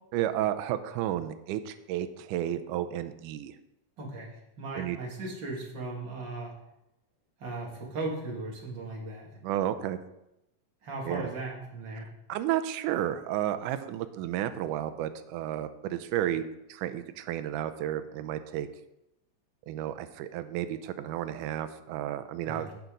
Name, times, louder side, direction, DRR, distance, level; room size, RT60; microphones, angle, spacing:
voice 1, 0.1-3.6 4.8-5.0 9.4-10.0 11.1-11.2 12.3-16.4 16.7-18.7 19.7-22.7, right 12 dB, 80° right, 10 dB, 2.1 m, -32 dB
voice 2, 4.0-6.5 7.4-9.3 10.8-12.1 22.5-22.7, right 2 dB, 35° right, -2 dB, 2.6 m, -37 dB
17.5 x 5.9 x 3.9 m, 0.87 s
omnidirectional pair, 3.8 m